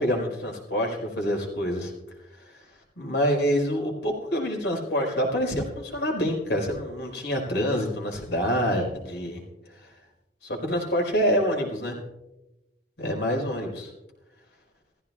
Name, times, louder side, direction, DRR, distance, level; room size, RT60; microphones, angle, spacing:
voice 1, 0.0-1.9 2.5-2.6 3.0-9.4 9.7-9.9 10.4-12.0 13.0-13.9, equal, 80° left, 0 dB, 4.7 m, -26 dB
20.0 x 15.0 x 2.4 m, 0.95 s
head